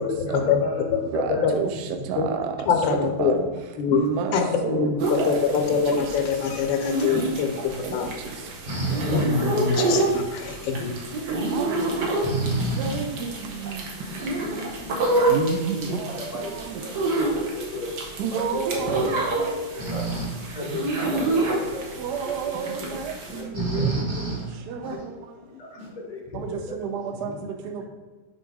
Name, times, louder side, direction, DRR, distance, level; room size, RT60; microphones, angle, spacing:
voice 1, 0.0-1.5 15.9-17.9 18.3-18.6 18.9-19.0 19.7-20.1 20.5-21.9 22.2-22.3 22.8-23.0 23.3-24.0 24.9-25.0 25.4-27.0 27.2-27.4, left 2 dB, 40° left, 0.5 m, -35 dB
voice 2, 1.1-2.6 2.9-3.5 3.9-4.4 4.6-5.6 5.9-6.1 7.8-8.0 9.2-9.4 11.5-11.8 12.8-13.8 15.3-16.8 18.2-19.5 22.0-24.0 24.7-25.1 26.3-27.3 27.6-27.9, right 6 dB, 75° right, 0.9 m, -30 dB
voice 3, 2.7-3.3 3.8-4.0 4.3-8.1 9.1-10.9, left 6 dB, 75° left, 1.4 m, -24 dB
sound 1, 5.0-23.4, right 2 dB, 60° right, 1.4 m, -28 dB
voice 4, 8.7-9.3 12.2-13.0 14.1-15.4 19.8-20.3 23.5-24.5 24.8-25.0 25.8-25.9, right 2 dB, 30° right, 1.4 m, -29 dB
6.9 x 3.0 x 4.7 m
omnidirectional pair, 2.2 m